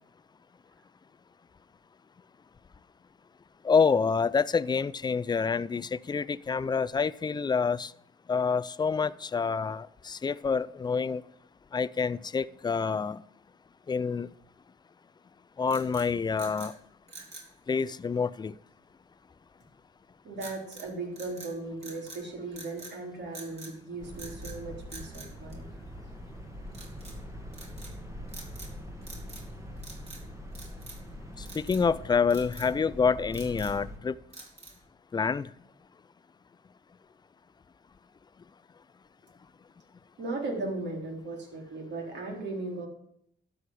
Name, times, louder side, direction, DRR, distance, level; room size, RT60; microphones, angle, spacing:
voice 1, 3.6-7.9 8.3-11.2 11.7-13.2 13.9-14.3 15.6-16.7 17.7-18.5 31.4-34.1 35.1-35.5, left 5 dB, 20° left, 18 dB, 0.4 m, -27 dB
sound 1, 15.6-16.7 17.1-17.5 20.4-20.9 21.2-22.2 22.5-23.0 23.3-23.7 24.1-24.6 24.9-26.1 26.7-27.2 27.5-27.9 28.3-28.8 29.0-29.5 29.8-30.2 30.5-31.1 31.5-31.9 32.3-32.7 33.1-33.8 34.3-34.9, right 3 dB, 30° right, 3.4 m, -47 dB
voice 2, 20.2-25.7 40.2-42.9, right 2 dB, 60° right, 0 dB, 3.7 m, -37 dB
sound 2, 24.0-34.0, equal, 15° right, 1.6 m, -43 dB
12.0 x 5.0 x 8.5 m, 0.71 s
cardioid pair, 90°, 20 cm